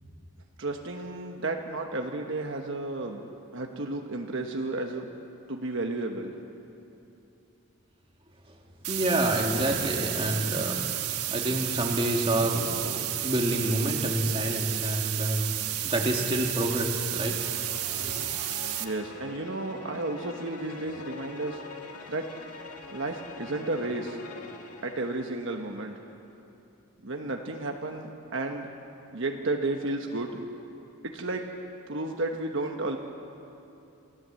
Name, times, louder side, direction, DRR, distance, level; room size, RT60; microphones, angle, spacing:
voice 1, 0.6-3.2 3.5-5.0 5.5-6.3 18.8-21.6 22.1-22.2 22.9-24.2 24.8-25.9 27.0-28.7 29.1-30.4 31.0-31.4 31.9-33.0, right 2 dB, 55° right, 2 dB, 1.2 m, -32 dB
sound 1, 8.8-18.8, right 13 dB, 90° right, 1.3 m, -32 dB
voice 2, 8.9-15.5 15.8-17.4 18.0-18.3, right 1 dB, 25° right, 1 dB, 2.0 m, -28 dB
sound 2, 17.1-25.7, left 4 dB, 90° left, 1.8 m, -44 dB
27.0 x 16.0 x 7.7 m, 2.8 s
head